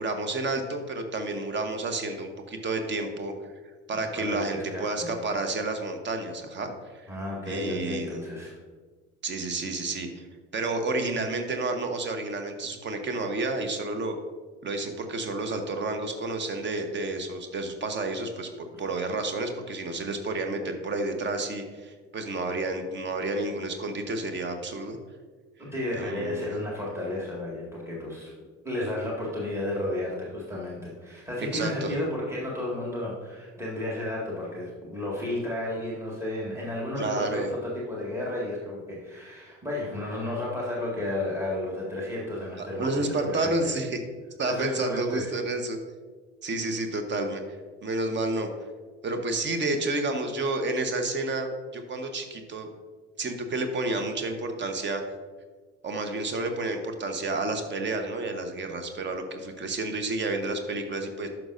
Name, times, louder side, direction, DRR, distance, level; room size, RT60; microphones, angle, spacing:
voice 1, 0.0-3.3 3.9-7.1 7.5-8.3 9.2-10.2 10.5-14.2 14.6-18.5 18.8-25.0 26.0-26.5 31.5-31.9 37.0-37.5 42.6-44.0 44.4-45.8 46.4-47.4 47.8-48.5 49.0-52.7 53.2-55.0 55.8-61.3, right 2 dB, 30° right, 6 dB, 1.1 m, -30 dB
voice 2, 3.9-5.2 7.1-8.6 25.7-28.3 28.6-43.7 44.4-45.3, left 1 dB, 5° right, -4 dB, 1.9 m, -32 dB
11.0 x 6.1 x 2.6 m, 1.4 s
figure-of-eight pair, 60°, 36 cm